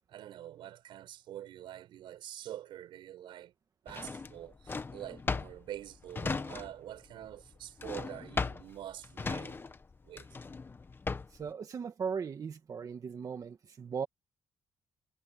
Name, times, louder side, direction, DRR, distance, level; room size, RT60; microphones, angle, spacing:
voice 1, 0.1-3.5 3.8-9.6 10.0-10.3, right 12 dB, 90° right, 5.6 m, -46 dB
Drawer open or close, 3.9-7.0 7.2-11.5, left 4 dB, 25° left, 1.2 m, -37 dB
voice 2, 11.3-14.1, right 6 dB, 45° right, 1.9 m, -38 dB
cardioid pair, 110°, 8 cm